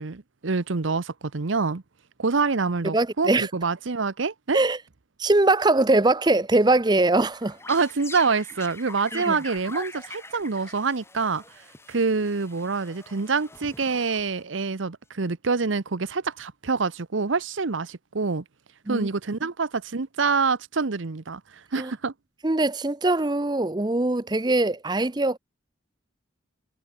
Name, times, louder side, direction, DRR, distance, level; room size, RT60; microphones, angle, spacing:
voice 1, 0.0-1.8 2.2-4.6 7.7-11.4 11.9-18.4 18.9-21.4 21.7-22.1, right 4 dB, 80° right, 0.9 m, -26 dB
voice 2, 2.9-3.5 4.5-4.8 5.2-7.6 9.1-9.4 18.9-19.1 21.8-21.9 22.4-25.4, right 2 dB, 20° right, 0.6 m, -22 dB
sound 1, 7.3-14.6, left 2 dB, 15° left, 3.6 m, -43 dB
head